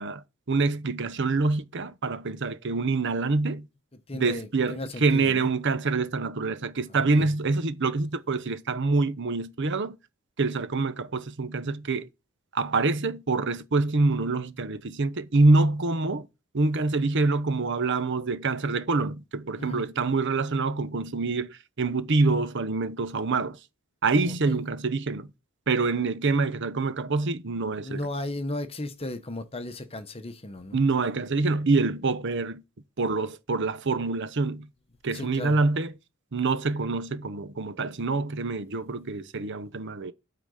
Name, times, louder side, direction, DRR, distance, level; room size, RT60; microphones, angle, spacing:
voice 1, 0.0-3.7 4.1-10.0 10.4-12.1 12.5-16.3 16.5-23.6 24.0-25.3 25.7-28.0 30.7-32.6 33.0-34.7 35.0-35.9 36.3-40.1, right 3 dB, 55° right, 0.8 m, -26 dB
voice 2, 4.1-5.5 6.9-7.3 19.6-19.8 24.2-24.6 27.8-30.8 35.1-35.6, left 1 dB, 30° left, 1.0 m, -35 dB
8.8 x 3.9 x 6.3 m
head